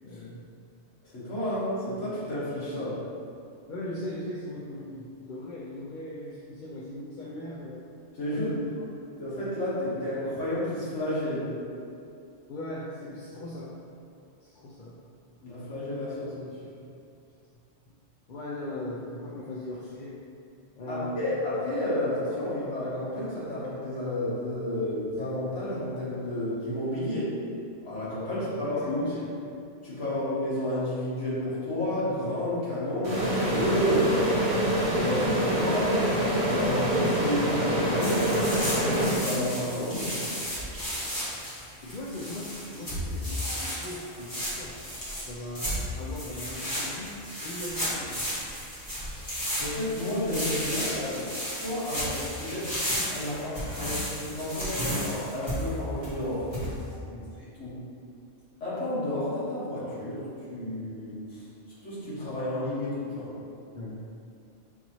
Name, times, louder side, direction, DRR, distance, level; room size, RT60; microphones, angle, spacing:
voice 1, 0.0-0.5 3.7-7.9 8.3-8.6 12.5-13.7 14.4-15.0 18.3-20.1 20.8-21.3 28.3-29.3 30.0-30.2 41.8-44.8 45.3-48.3 57.1-57.4 63.7-64.0, left 1 dB, 55° left, -6 dB, 0.5 m, -39 dB
voice 2, 1.1-3.0 8.2-8.5 9.2-11.5 15.4-16.8 20.9-27.4 27.8-29.0 29.8-34.2 34.9-38.5 38.8-40.2 40.9-41.2 49.6-51.3 51.6-52.7 53.1-56.5 57.6-57.8 58.6-61.4 61.8-63.3, left 1 dB, 85° left, -11 dB, 1.8 m, -31 dB
sound 1, 33.0-39.7, equal, 25° right, 0.8 m, -26 dB
sound 2, 38.0-56.9, equal, 20° left, 1.2 m, -34 dB
5.9 x 2.7 x 3.0 m, 2.5 s
omnidirectional pair, 1.2 m